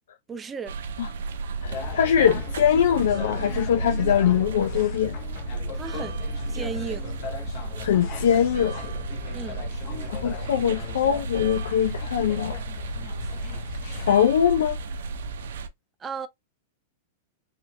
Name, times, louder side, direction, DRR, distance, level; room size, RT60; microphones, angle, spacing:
voice 1, 0.3-0.8 5.7-6.2 6.5-7.1 9.3-9.6 16.0-16.3, right 6 dB, 15° right, 0.5 m, -34 dB
sound 1, 0.7-15.7, right 4 dB, 85° right, 0.8 m, -33 dB
voice 2, 1.6-5.2 7.8-8.8 10.1-12.5 14.0-14.8, left 9 dB, 85° left, 0.7 m, -22 dB
sound 2, 1.6-14.2, left 5 dB, 40° left, 1.0 m, -36 dB
4.6 x 3.9 x 2.2 m
supercardioid pair, 150°, 0 cm